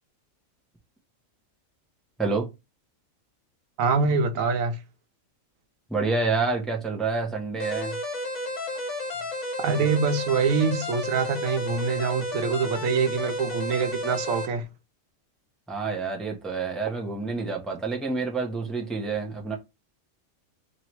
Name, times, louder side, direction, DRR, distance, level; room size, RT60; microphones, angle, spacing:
voice 1, 2.2-2.5 5.9-8.0 15.7-19.6, right 4 dB, ahead, 0.6 m, -28 dB
voice 2, 3.8-4.8 9.6-14.7, right 5 dB, 85° right, 1.1 m, -25 dB
sound 1, 7.6-14.5, left 2 dB, 65° left, 1.5 m, -32 dB
3.0 x 2.8 x 4.4 m
omnidirectional pair, 1.4 m